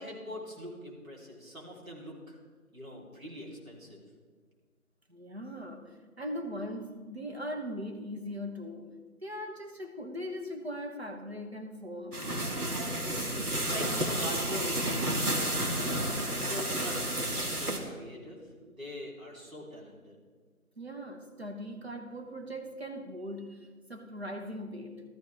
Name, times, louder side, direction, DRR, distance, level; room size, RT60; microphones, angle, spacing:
voice 1, 0.0-2.4 2.7-4.0 13.2-20.2, left 1 dB, 65° right, -3 dB, 3.8 m, -43 dB
voice 2, 5.1-12.2 20.8-25.0, equal, 45° right, 3 dB, 1.3 m, -40 dB
sound 1, 12.1-17.8, right 1 dB, 80° right, 2.0 m, -31 dB
14.0 x 13.5 x 3.5 m, 1.5 s
figure-of-eight pair, 175°, 44 cm